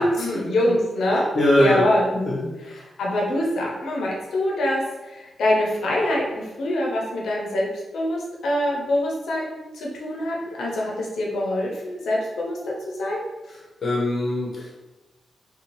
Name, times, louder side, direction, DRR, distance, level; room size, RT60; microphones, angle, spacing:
voice 1, 0.0-1.2 1.6-2.1 3.0-4.8 5.4-7.7 7.9-12.7 13.0-13.2, left 1 dB, 90° left, -2 dB, 0.7 m, -24 dB
voice 2, 1.3-1.9 2.1-2.5 13.5-14.7, left 1 dB, 50° left, -5 dB, 0.8 m, -22 dB
2.7 x 2.3 x 2.9 m, 1.1 s
cardioid pair, 85°, 0 cm